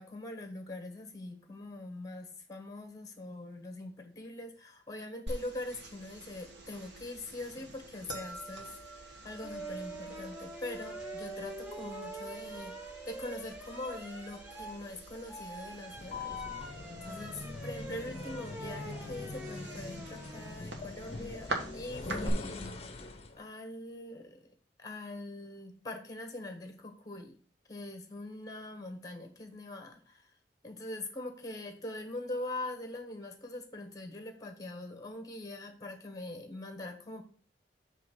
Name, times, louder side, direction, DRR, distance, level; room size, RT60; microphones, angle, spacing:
voice 1, 0.0-12.7 13.0-16.4 17.0-24.5 24.8-27.3 27.7-30.3 30.6-37.2, left 2 dB, 20° left, 5 dB, 1.4 m, -43 dB
sound 1, 5.3-22.3, right 2 dB, 85° right, 1.6 m, -45 dB
sound 2, 9.4-20.6 22.3-22.7, equal, 10° right, 0.8 m, -47 dB
sound 3, 15.9-23.4, left 3 dB, 35° left, 0.8 m, -42 dB
7.4 x 3.3 x 6.1 m, 0.42 s
head